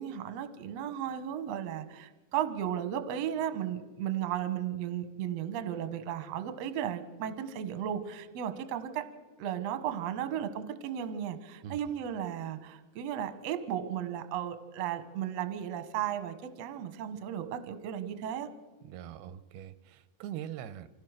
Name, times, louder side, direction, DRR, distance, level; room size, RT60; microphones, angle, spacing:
voice 1, 0.0-9.1 9.4-18.5, right 10 dB, 60° right, 10 dB, 1.9 m, -35 dB
voice 2, 18.8-20.9, right 10 dB, 90° right, 14 dB, 2.8 m, -42 dB
26.0 x 16.5 x 6.5 m, 1.2 s
omnidirectional pair, 4.4 m